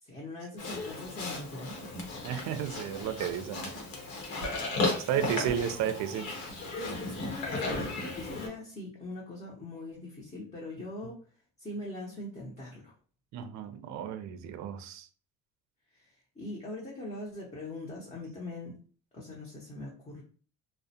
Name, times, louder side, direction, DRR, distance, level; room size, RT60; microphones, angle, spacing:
voice 1, 0.0-1.9 5.1-5.6 6.8-11.2 11.6-12.9 15.9-18.7 19.1-20.2, left 2 dB, 20° left, 0.7 m, -42 dB
Livestock farm animals working animals, 0.6-8.5, left 2 dB, 90° left, 0.9 m, -35 dB
voice 2, 2.2-3.7 5.0-6.3 13.3-15.1, right 9 dB, 55° right, 0.5 m, -33 dB
2.3 x 2.1 x 2.7 m
supercardioid pair, 95°, 34 cm